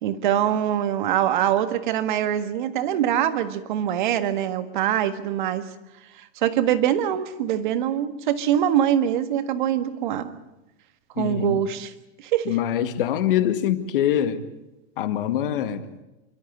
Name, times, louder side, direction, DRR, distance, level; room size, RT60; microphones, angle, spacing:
voice 1, 0.0-5.7 6.4-10.4 11.2-11.9 12.2-12.6, right 10 dB, 50° right, 1.7 m, -23 dB
voice 2, 11.2-11.6 12.5-14.4 15.0-15.8, left 10 dB, 55° left, 2.0 m, -24 dB
28.5 x 13.0 x 9.8 m
supercardioid pair, 180°, 32 cm